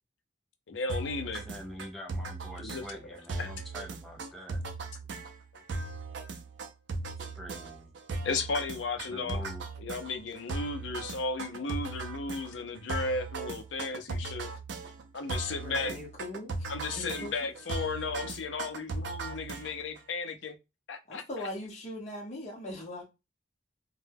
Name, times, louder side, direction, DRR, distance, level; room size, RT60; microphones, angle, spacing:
voice 1, 0.7-1.5 2.6-2.8 3.4-3.5 8.2-9.5 9.8-14.5 15.1-16.0 16.7-20.6 20.9-21.5, left 3 dB, 75° left, 0.5 m, -35 dB
sound 1, 0.9-20.0, right 3 dB, 70° right, 0.4 m, -38 dB
voice 2, 1.4-4.6 7.4-7.9 9.1-9.6, equal, ahead, 0.4 m, -44 dB
voice 3, 15.6-17.4 21.1-23.1, left 1 dB, 40° left, 0.7 m, -41 dB
2.2 x 2.0 x 3.3 m
head